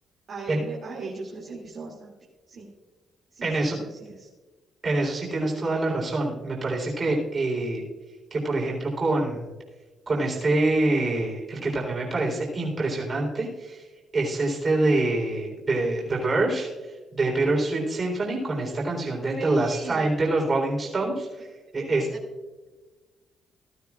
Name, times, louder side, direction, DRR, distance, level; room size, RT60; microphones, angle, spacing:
voice 1, 0.3-2.1 2.5-2.7 3.3-4.3 19.3-20.1 22.1-22.2, right 4 dB, 60° right, -4 dB, 2.6 m, -39 dB
voice 2, 3.4-3.8 4.8-7.8 8.3-9.5 10.1-13.8 14.1-16.7 17.1-21.5 21.7-22.1, right 2 dB, 35° right, -1 dB, 3.9 m, -25 dB
18.0 x 13.0 x 2.5 m, 1.2 s
cardioid pair, 90°, 0 cm